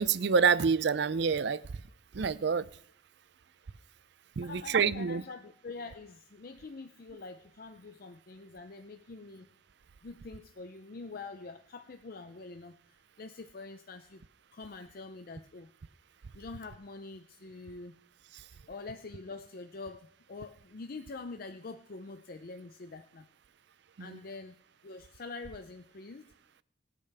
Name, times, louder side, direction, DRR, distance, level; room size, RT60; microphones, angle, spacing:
voice 1, 0.0-1.6 2.1-2.7 4.4-5.2 24.0-24.2, right 5 dB, 60° right, 0.5 m, -27 dB
voice 2, 4.4-9.5 10.0-14.2 14.5-15.7 16.3-17.9 18.7-23.3 24.0-24.6 24.8-26.2, left 3 dB, 50° left, 0.5 m, -45 dB
23.0 x 8.5 x 3.4 m
head